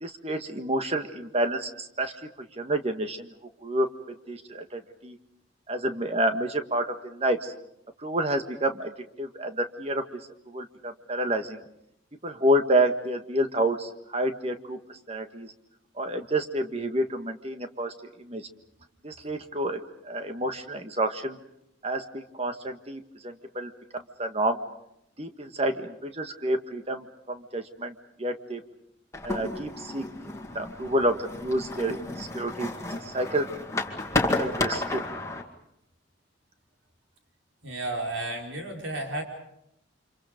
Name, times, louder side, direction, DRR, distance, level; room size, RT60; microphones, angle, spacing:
voice 1, 0.0-3.3 3.6-3.9 4.3-5.2 5.7-7.5 8.0-8.9 9.2-10.2 10.5-11.6 12.2-15.5 16.0-18.5 19.0-21.4 21.8-24.6 25.2-28.6 29.2-32.7 33.0-33.5 34.4-35.0, right 1 dB, 30° right, 7 dB, 1.6 m, -29 dB
sound 1, 29.1-35.4, left 2 dB, 15° left, 2.1 m, -32 dB
voice 2, 37.6-39.2, right 2 dB, 75° right, 1 dB, 5.1 m, -32 dB
30.0 x 26.5 x 5.2 m, 0.78 s
head